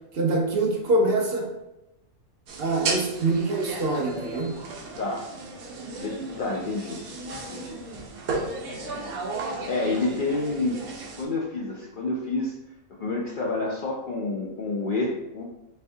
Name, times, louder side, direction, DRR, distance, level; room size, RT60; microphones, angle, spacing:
voice 1, 0.1-1.5 2.6-4.5, right 2 dB, 50° right, 1 dB, 0.8 m, -24 dB
sound 1, 2.5-11.2, right 3 dB, 80° right, 1.2 m, -34 dB
voice 2, 5.0-5.3 6.0-7.1 7.5-7.8 8.6-9.1 9.6-10.8 11.2-12.5 12.9-15.4, left 3 dB, 80° left, -3 dB, 0.4 m, -29 dB
4.2 x 3.4 x 2.6 m, 0.92 s
omnidirectional pair, 1.5 m